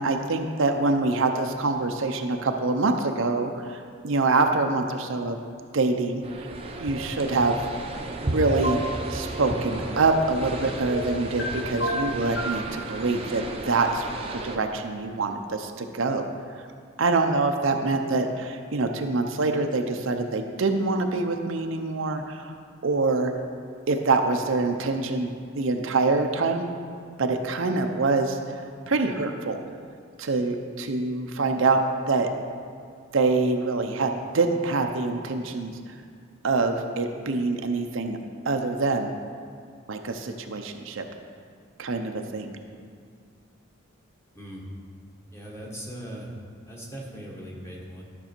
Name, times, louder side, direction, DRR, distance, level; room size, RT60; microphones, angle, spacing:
voice 1, 0.0-5.4 5.7-6.5 6.8-7.6 8.2-8.8 9.1-16.2 16.6-16.7 17.0-22.5 22.8-23.3 23.9-26.7 27.2-28.4 28.9-29.6 30.2-32.3 33.1-36.0 36.4-38.2 38.5-39.1 39.9-41.0 41.8-42.5, right 3 dB, 65° right, 5 dB, 0.6 m, -25 dB
sound 1, 6.2-14.6, right 2 dB, 30° right, 0.7 m, -34 dB
sound 2, 8.5-8.8 10.9-11.5 11.8-12.6, right 1 dB, 60° left, 1.7 m, -28 dB
voice 2, 45.3-46.3 46.6-48.0, equal, 15° left, -3 dB, 1.4 m, -39 dB
12.5 x 6.1 x 4.4 m, 2.2 s
head